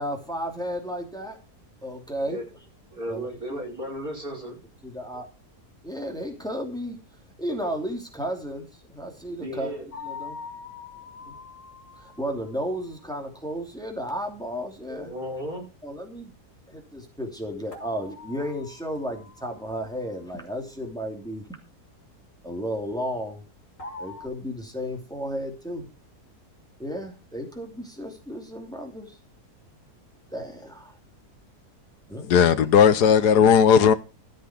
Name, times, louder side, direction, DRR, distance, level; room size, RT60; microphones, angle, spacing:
voice 1, 0.0-1.4 1.8-2.4 3.1-3.6 4.8-5.3 5.8-7.0 7.4-9.8 10.0-10.4 11.2-11.3 12.0-15.1 15.8-16.3 16.7-21.4 22.4-23.4 24.0-25.9 26.8-29.1 30.3-30.9 32.1-32.6, equal, ahead, 2.9 m, -33 dB
voice 2, 2.9-4.6 9.4-9.9 14.9-15.7, equal, 65° right, 5.5 m, -34 dB
sound 1, 9.9-12.9 17.7-19.9 23.8-24.3, left 4 dB, 55° left, 4.4 m, -42 dB
voice 3, 32.3-33.9, left 7 dB, 85° left, 1.5 m, -16 dB
14.5 x 8.0 x 5.1 m
omnidirectional pair, 1.7 m